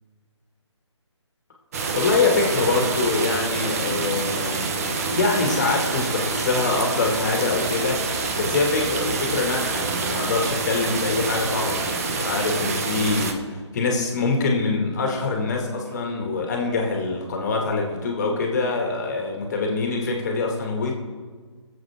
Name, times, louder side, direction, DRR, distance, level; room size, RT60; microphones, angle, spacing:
sound 1, 1.7-13.3, right 4 dB, 30° right, 1.0 m, -27 dB
voice 1, 2.0-4.8 5.1-8.0 8.4-21.0, left 3 dB, 35° left, 1 dB, 2.0 m, -24 dB
22.0 x 7.7 x 3.6 m, 1.5 s
figure-of-eight pair, 155°, 15 cm